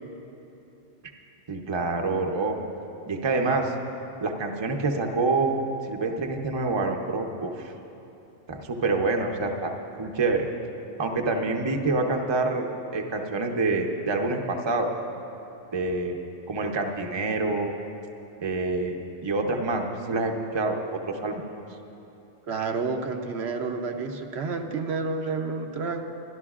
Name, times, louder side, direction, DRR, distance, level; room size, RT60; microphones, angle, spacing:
voice 1, 1.5-2.6 3.1-3.7 4.2-7.7 8.5-10.5 11.0-12.7 12.9-14.9 15.7-16.2 16.5-17.7 18.4-21.4, right 3 dB, 30° right, 3 dB, 0.6 m, -27 dB
voice 2, 22.5-26.0, right 4 dB, 75° right, 4 dB, 1.0 m, -30 dB
23.0 x 11.5 x 2.4 m, 2.9 s
omnidirectional pair, 1.1 m